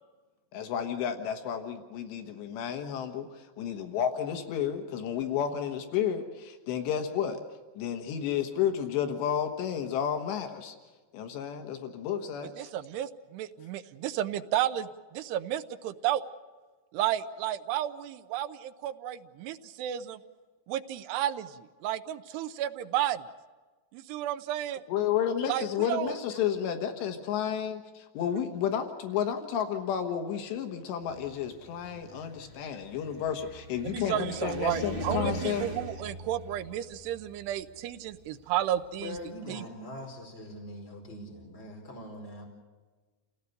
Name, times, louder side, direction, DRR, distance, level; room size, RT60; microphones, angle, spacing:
voice 1, 0.5-7.4 7.8-10.8 11.1-12.7 24.9-35.6, left 8 dB, 85° left, 5 dB, 3.6 m, -31 dB
voice 2, 12.6-16.2 16.9-20.2 20.7-23.3 23.9-24.8 25.5-26.1 33.8-39.2 39.5-39.7, right 12 dB, 80° right, 10 dB, 2.9 m, -32 dB
Car, 31.1-39.3, right 1 dB, 25° right, 1.1 m, -41 dB
voice 3, 39.0-42.4, left 1 dB, 15° left, 0 dB, 4.5 m, -42 dB
29.0 x 18.0 x 6.8 m, 1.3 s
omnidirectional pair, 4.9 m